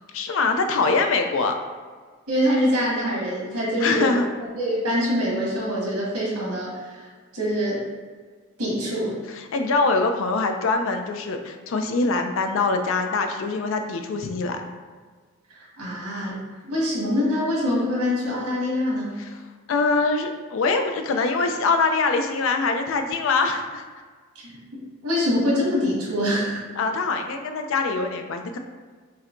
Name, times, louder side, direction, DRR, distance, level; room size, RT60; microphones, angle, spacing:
voice 1, 0.1-1.6 3.8-4.3 9.3-14.6 19.2-19.4 19.7-23.8 26.8-28.6, left 3 dB, 60° left, 5 dB, 0.4 m, -23 dB
voice 2, 2.3-4.2 4.6-7.1 7.3-7.8 8.6-9.2 15.5-19.2 24.3-26.6, equal, 90° right, -5 dB, 1.3 m, -25 dB
5.5 x 2.2 x 2.5 m, 1.5 s
head